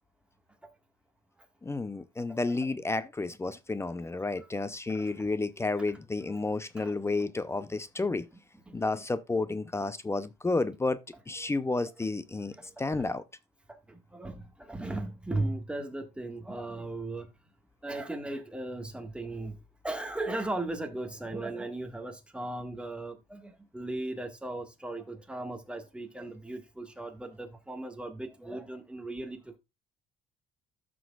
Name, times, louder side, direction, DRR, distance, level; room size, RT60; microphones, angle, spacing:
voice 1, 1.6-8.3 8.7-11.0 11.3-13.2, left 3 dB, 15° left, 0.5 m, -31 dB
voice 2, 4.9-5.3 6.8-6.9 8.7-8.8 12.5-13.1 13.7-17.3 17.8-19.6 19.8-29.6, right 2 dB, 5° right, 1.6 m, -37 dB
14.0 x 6.1 x 2.3 m
cardioid pair, 110°, 17 cm